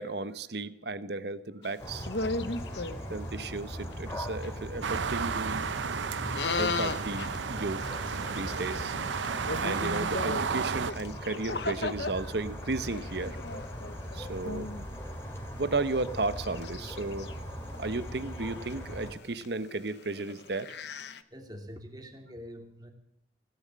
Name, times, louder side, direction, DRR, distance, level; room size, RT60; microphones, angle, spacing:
voice 1, 0.0-2.1 3.1-5.7 6.6-9.0 9.6-13.4 14.1-14.7 15.4-20.7, right 3 dB, 60° right, 14 dB, 1.0 m, -34 dB
sound 1, 1.6-3.4 3.9-4.0 4.2-4.5 4.9-5.0 5.3-5.6 6.2-12.1 12.6-14.9 15.4-15.5 16.0-17.3 17.7-21.2, left 3 dB, 65° left, 0.9 m, -37 dB
sound 2, 1.8-19.1, equal, 15° left, 2.6 m, -40 dB
voice 2, 2.4-3.1 21.3-22.9, equal, 20° right, 4 dB, 2.6 m, -46 dB
sound 3, 4.8-10.9, right 6 dB, 85° right, 0.6 m, -33 dB
17.0 x 11.0 x 7.5 m, 0.77 s
head